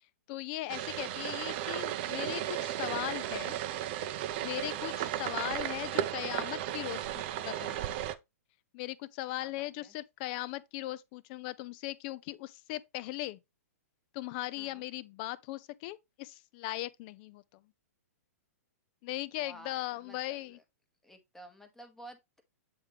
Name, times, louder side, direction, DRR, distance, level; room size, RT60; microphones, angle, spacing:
voice 1, 0.3-3.6 4.4-8.0 8.7-13.4 14.1-17.4 19.0-20.6, left 16 dB, 35° left, 0.4 m, -38 dB
sound 1, 0.7-8.1, right 12 dB, 40° right, 0.6 m, -35 dB
voice 2, 9.4-9.9 14.6-14.8 19.4-20.6 21.0-22.4, right 1 dB, 5° left, 1.0 m, -53 dB
7.9 x 3.6 x 3.4 m
hypercardioid pair, 145°, 9 cm